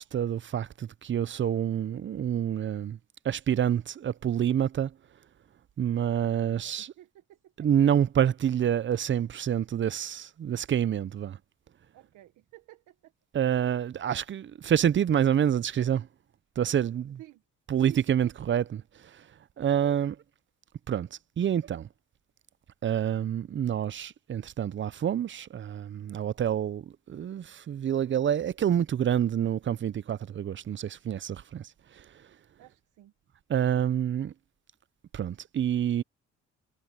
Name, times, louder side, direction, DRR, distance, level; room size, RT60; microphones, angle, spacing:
voice 1, 0.0-3.0 3.2-4.9 5.8-6.9 7.6-11.4 13.3-16.1 16.6-17.2 17.7-18.8 19.6-20.1 20.9-21.1 21.4-21.9 22.8-31.7 33.5-34.3 35.1-36.0, right 9 dB, 40° right, 0.6 m, -27 dB
voice 2, 6.4-7.7 11.9-13.1 17.2-17.4 17.8-18.3 32.6-33.1, right 14 dB, 90° right, 1.3 m, -51 dB
cardioid pair, 90°, 30 cm